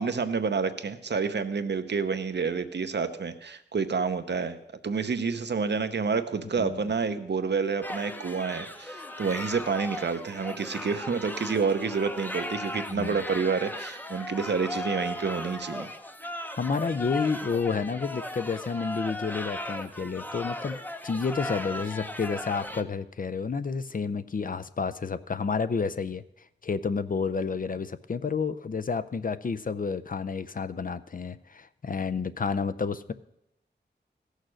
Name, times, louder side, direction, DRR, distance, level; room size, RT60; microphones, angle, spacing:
voice 1, 0.0-15.9, right 5 dB, 70° right, 9 dB, 0.8 m, -29 dB
sound 1, 7.8-22.8, left 1 dB, 10° left, 0.7 m, -37 dB
voice 2, 16.5-20.8 21.0-26.2 26.6-33.1, left 5 dB, 50° left, 13 dB, 0.5 m, -30 dB
15.5 x 6.5 x 6.3 m, 0.82 s
wide cardioid pair, 90°, 19 cm